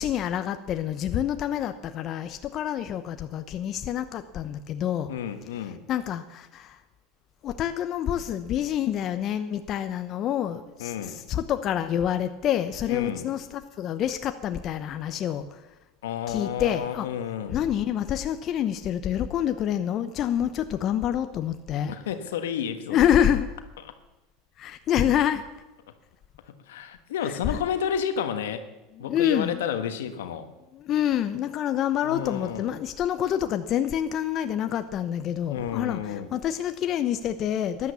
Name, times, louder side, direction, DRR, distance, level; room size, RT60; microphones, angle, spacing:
voice 1, 0.0-5.1 5.9-6.8 7.4-15.6 16.3-17.1 17.5-21.9 22.9-23.5 24.6-25.4 27.2-27.6 29.0-29.6 30.7-37.9, left 10 dB, 45° left, 9 dB, 0.9 m, -27 dB
voice 2, 5.1-5.8 10.8-11.2 12.9-13.3 16.0-17.6 21.9-23.1 26.7-28.6 29.0-30.5 32.0-32.7 35.5-36.3, left 8 dB, 80° left, 9 dB, 1.4 m, -31 dB
14.0 x 11.0 x 7.1 m, 1.0 s
hypercardioid pair, 90°, 0 cm